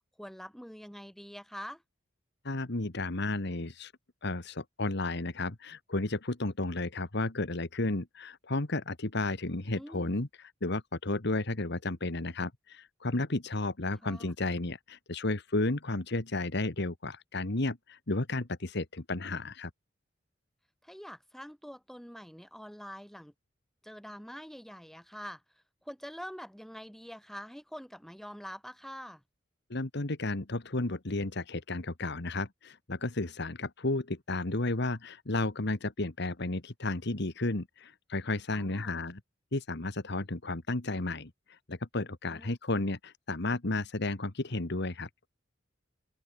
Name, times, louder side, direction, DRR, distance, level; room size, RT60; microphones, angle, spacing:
voice 1, 0.2-1.8 9.7-10.1 14.0-14.3 20.8-23.3 23.8-25.4 25.9-29.2 38.5-38.9 42.2-42.5, equal, ahead, 6.9 m, -45 dB
voice 2, 2.4-3.9 4.2-19.7 29.7-39.2 39.5-45.1, left 2 dB, 60° left, 1.8 m, -33 dB
open air
head